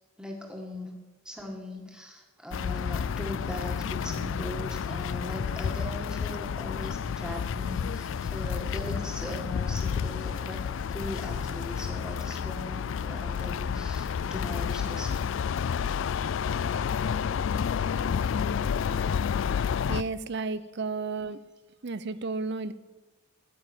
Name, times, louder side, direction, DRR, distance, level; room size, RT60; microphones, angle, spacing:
voice 1, 0.2-0.9 1.3-10.6 10.9-15.1, left 1 dB, 5° right, 2 dB, 1.8 m, -39 dB
sound 1, 2.5-20.0, left 7 dB, 60° left, 0.3 m, -30 dB
Boiling, 2.8-12.2, equal, 90° left, 4.0 m, -46 dB
voice 2, 19.9-21.4 21.8-22.7, right 3 dB, 50° right, 15 dB, 0.6 m, -32 dB
9.9 x 9.2 x 8.9 m, 1.2 s
head